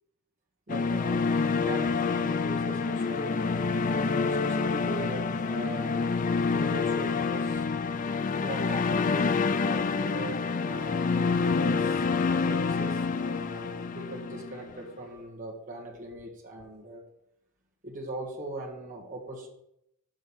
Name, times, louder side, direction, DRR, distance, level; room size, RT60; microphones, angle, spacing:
sound 1, 0.7-14.8, left 4 dB, 35° left, 0.4 m, -27 dB
voice 1, 0.7-3.4 3.7-7.8 8.3-17.0 17.8-19.5, right 2 dB, 40° right, -2 dB, 1.5 m, -41 dB
6.4 x 6.1 x 7.2 m, 0.79 s
head